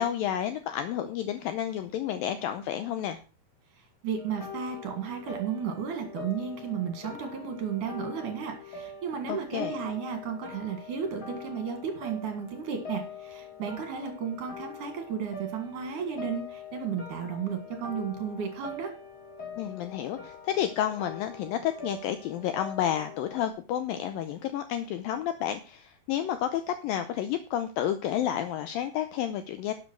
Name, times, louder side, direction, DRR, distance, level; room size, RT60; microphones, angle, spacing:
voice 1, 0.0-3.2 9.3-9.7 19.6-29.7, left 10 dB, 85° left, 9 dB, 2.0 m, -30 dB
voice 2, 3.8-18.9, right 7 dB, 55° right, 5 dB, 3.1 m, -34 dB
sound 1, 4.2-23.5, left 4 dB, 50° left, 1.2 m, -44 dB
12.0 x 7.8 x 4.6 m, 0.35 s
omnidirectional pair, 4.8 m